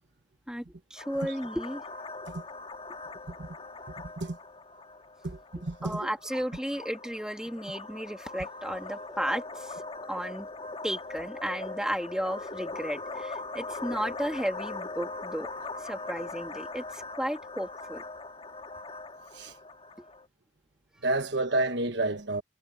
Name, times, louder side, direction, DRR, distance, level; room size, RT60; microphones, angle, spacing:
voice 1, 0.9-1.8 5.8-9.8 10.1-10.5 10.8-15.5 15.8-18.0, equal, 5° right, 2.0 m, -34 dB
sound 1, 1.0-20.3, left 3 dB, 25° left, 1.9 m, -41 dB
voice 2, 5.2-5.7 19.4-19.5 21.0-22.4, right 2 dB, 55° right, 1.3 m, -29 dB
head